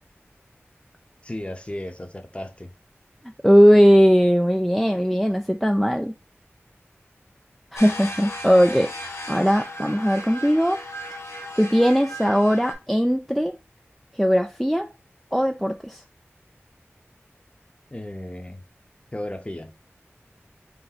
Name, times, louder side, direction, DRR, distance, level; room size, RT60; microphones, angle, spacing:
voice 1, 1.2-2.7 17.9-18.6 19.1-19.7, left 1 dB, 25° left, 0.7 m, -34 dB
voice 2, 3.4-6.1 7.7-10.8 11.6-13.5 14.2-14.9 15.3-16.0, equal, ahead, 0.3 m, -19 dB
sound 1, 7.7-12.7, equal, 80° left, 1.0 m, -36 dB
3.3 x 2.8 x 4.0 m
wide cardioid pair, 60°, 5 cm